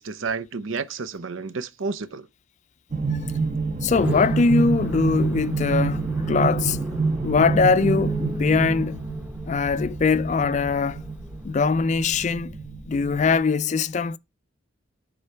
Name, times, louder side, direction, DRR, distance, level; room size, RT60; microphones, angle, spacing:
voice 1, 0.0-2.3, right 4 dB, 90° right, 0.7 m, -31 dB
sound 1, 2.9-13.4, right 4 dB, 40° right, 1.3 m, -28 dB
voice 2, 3.8-6.8 7.2-9.1 9.5-11.1 11.4-12.5 12.9-14.2, left 4 dB, 40° left, 0.3 m, -22 dB
sound 2, 3.9-11.7, left 1 dB, 10° right, 0.8 m, -38 dB
9.7 x 3.9 x 4.5 m
head